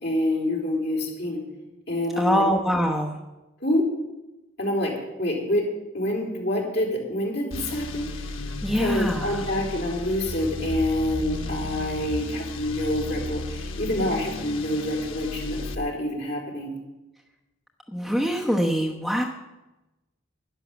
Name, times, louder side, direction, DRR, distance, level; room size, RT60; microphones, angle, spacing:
voice 1, 0.0-1.4 1.9-2.4 3.6-3.8 4.6-4.9 5.2-5.6 5.9-8.0 8.7-16.7, left 1 dB, 55° left, -2 dB, 4.1 m, -27 dB
voice 2, 2.2-3.2 8.6-9.5 17.9-19.2, equal, ahead, -1 dB, 1.0 m, -24 dB
sound 1, 7.5-15.8, left 2 dB, 85° left, 1.2 m, -34 dB
11.5 x 11.0 x 7.1 m, 1.0 s
head